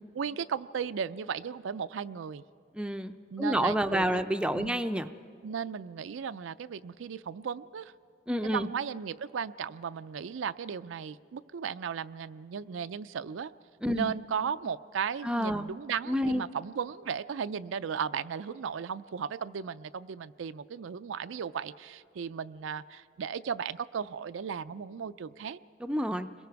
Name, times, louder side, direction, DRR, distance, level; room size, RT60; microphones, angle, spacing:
voice 1, 0.1-2.4 3.3-4.3 4.5-4.8 5.4-7.9 8.4-13.5 13.9-25.6, right 7 dB, 90° right, 13 dB, 0.4 m, -36 dB
voice 2, 2.8-5.1 8.3-8.7 13.8-14.1 15.2-15.7 16.1-16.4 25.8-26.3, equal, 5° right, 8 dB, 0.4 m, -29 dB
30.0 x 22.0 x 4.7 m, 2.5 s
head